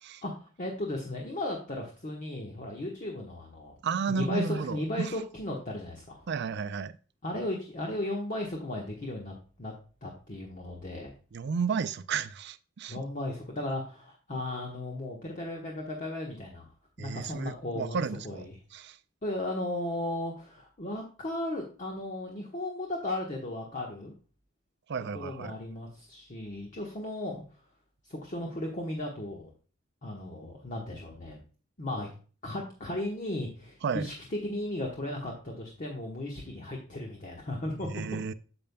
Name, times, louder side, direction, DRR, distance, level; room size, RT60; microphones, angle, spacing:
voice 1, 0.2-3.7 4.0-6.3 7.2-9.7 10.0-11.1 12.9-16.7 17.0-18.6 19.2-24.1 25.1-27.4 28.1-29.5 30.0-31.4 31.8-32.1 32.4-37.9, left 1 dB, 40° left, 1.2 m, -35 dB
voice 2, 3.8-5.1 6.3-7.0 11.3-13.0 17.0-19.0 24.9-25.5 33.8-34.1 37.8-38.3, right 5 dB, 55° right, 0.4 m, -33 dB
8.5 x 7.0 x 2.2 m
head